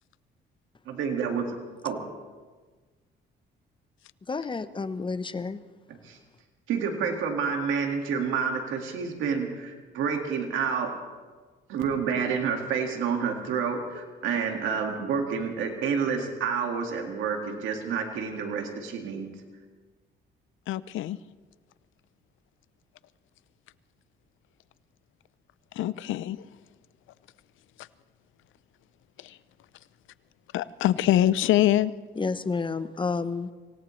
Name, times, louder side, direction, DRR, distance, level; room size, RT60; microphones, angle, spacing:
voice 1, 0.9-1.6 1.8-2.0 5.9-6.2 6.7-10.9 11.7-19.3, right 6 dB, 90° right, 3 dB, 2.0 m, -29 dB
voice 2, 4.3-5.6 32.2-33.5, left 4 dB, 25° left, 13 dB, 0.8 m, -30 dB
voice 3, 20.7-21.2 25.8-26.4 29.2-29.4 30.5-31.9, left 13 dB, 80° left, 17 dB, 0.6 m, -24 dB
26.0 x 17.5 x 3.2 m, 1.4 s
cardioid pair, 90°, 20 cm